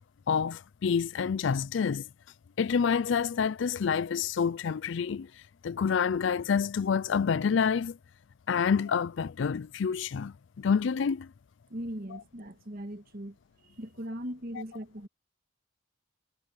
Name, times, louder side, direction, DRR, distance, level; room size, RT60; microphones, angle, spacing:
voice 1, 0.3-2.1 2.6-5.3 5.6-8.0 8.5-11.3 12.1-12.2 14.5-14.6, left 6 dB, 65° left, 0.4 m, -28 dB
voice 2, 11.7-13.3 13.8-15.1, equal, 45° right, 1.6 m, -39 dB
head